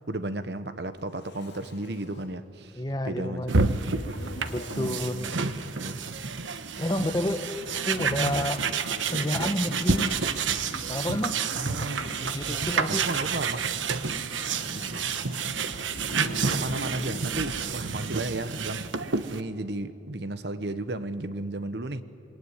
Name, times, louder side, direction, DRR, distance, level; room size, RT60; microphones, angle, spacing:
voice 1, 0.0-4.0 4.7-6.0 11.6-12.6 12.9-13.7 14.6-14.9 16.1-18.9 19.3-22.0, right 2 dB, 60° right, 1.1 m, -34 dB
Zipper (clothing), 0.9-2.3 4.0-5.1 6.5-9.7 10.5-12.8 13.7-17.7, left 1 dB, 70° left, 4.2 m, -45 dB
voice 2, 2.8-3.8 4.5-5.3 6.8-7.5 7.8-8.6 9.1-10.2 10.9-11.4 11.8-13.1, left 1 dB, 20° left, 1.3 m, -30 dB
sound 1, 3.5-19.4, right 5 dB, 85° right, 1.2 m, -29 dB
26.5 x 22.5 x 9.8 m
head